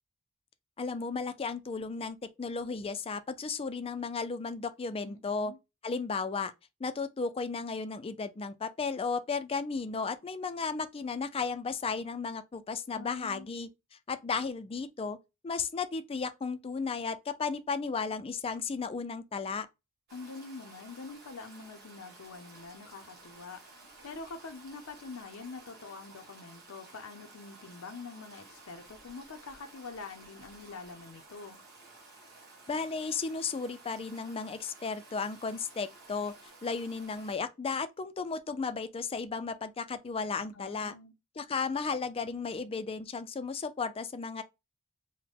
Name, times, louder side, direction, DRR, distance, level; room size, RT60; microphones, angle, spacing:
voice 1, 0.8-5.5 5.8-6.5 6.8-15.2 15.4-19.7 32.7-36.3 36.6-40.9 41.4-44.4, left 4 dB, 25° left, 0.4 m, -34 dB
voice 2, 5.0-5.6 12.9-13.5 20.1-31.6 40.5-41.1, left 4 dB, 70° left, 0.6 m, -45 dB
Stream, 20.1-37.4, right 2 dB, 50° right, 1.4 m, -54 dB
3.7 x 2.1 x 3.5 m
head